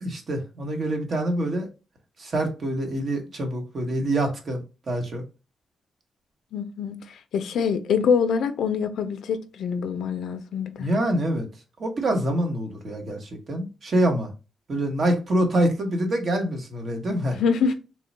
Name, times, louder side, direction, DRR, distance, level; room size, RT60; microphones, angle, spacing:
voice 1, 0.0-1.7 2.2-4.6 4.9-5.2 10.8-11.5 11.8-14.3 14.7-17.4, right 1 dB, 50° right, 0.9 m, -25 dB
voice 2, 6.5-10.9 17.3-17.7, left 6 dB, 85° left, 0.4 m, -25 dB
3.1 x 2.2 x 4.0 m
cardioid pair, 105°, 0 cm